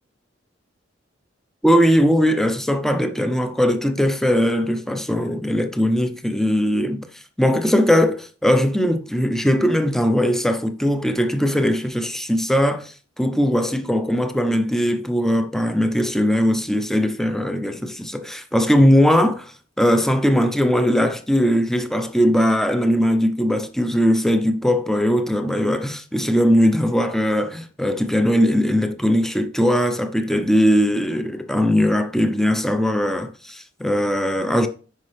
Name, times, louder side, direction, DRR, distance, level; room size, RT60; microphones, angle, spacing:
voice 1, 1.6-34.7, equal, ahead, 0.7 m, -20 dB
9.6 x 5.3 x 3.3 m
head